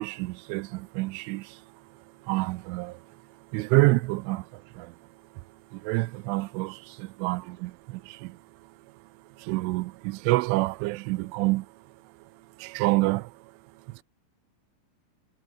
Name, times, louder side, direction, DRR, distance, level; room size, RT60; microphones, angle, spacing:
voice 1, 0.0-5.0 5.3-5.4 5.7-9.1 9.4-14.0, right 22 dB, 85° right, 3.1 m, -29 dB
omnidirectional pair, 5.5 m